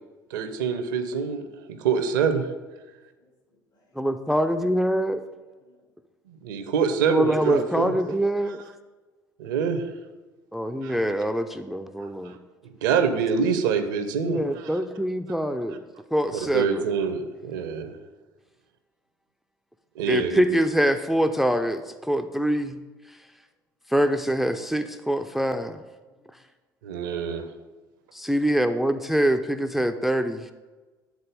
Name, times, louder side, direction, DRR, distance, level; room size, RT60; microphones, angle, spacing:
voice 1, 0.3-2.4 6.3-7.9 8.5-8.6 9.4-9.8 10.8-10.9 12.2-12.4 12.6-14.8 16.3-17.9 20.0-20.6 26.8-27.5, right 6 dB, 65° right, 8 dB, 0.7 m, -26 dB
voice 2, 3.2-3.9 5.5-5.9 26.1-26.4, left 1 dB, 80° left, -1 dB, 2.2 m, -63 dB
voice 3, 4.0-5.2 7.1-8.6 10.5-12.3 14.3-15.8 16.1-16.8 20.1-21.8 22.1-22.8 23.9-25.8 28.1-30.5, equal, ahead, 8 dB, 0.4 m, -24 dB
9.5 x 4.0 x 5.2 m, 1.3 s
figure-of-eight pair, 60°, 11 cm